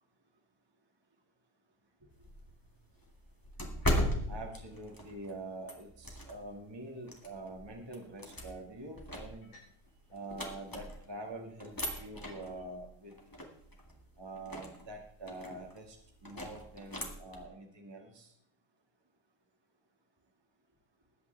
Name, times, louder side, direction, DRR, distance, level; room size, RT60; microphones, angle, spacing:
sound 1, 2.1-6.6 7.1-11.2 11.6-17.4, equal, 15° left, 0.7 m, -39 dB
voice 1, 4.3-9.5 10.1-13.1 14.2-16.0 16.2-18.3, right 2 dB, 15° right, 1.1 m, -45 dB
sound 2, 8.3-8.7 9.3-9.8 10.1-12.7, left 1 dB, 85° left, 5.5 m, -61 dB
20.0 x 8.4 x 3.4 m
omnidirectional pair, 3.7 m